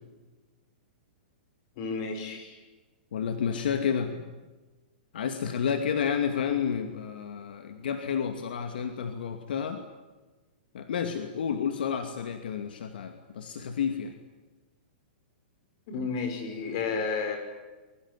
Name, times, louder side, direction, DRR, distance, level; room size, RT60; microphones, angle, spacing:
voice 1, 1.8-2.6 15.9-17.4, left 5 dB, 30° left, 6 dB, 5.5 m, -32 dB
voice 2, 3.1-4.1 5.1-9.8 10.7-14.1, left 7 dB, 65° left, 7 dB, 2.5 m, -30 dB
25.0 x 23.0 x 10.0 m, 1.2 s
hypercardioid pair, 180°, 6 cm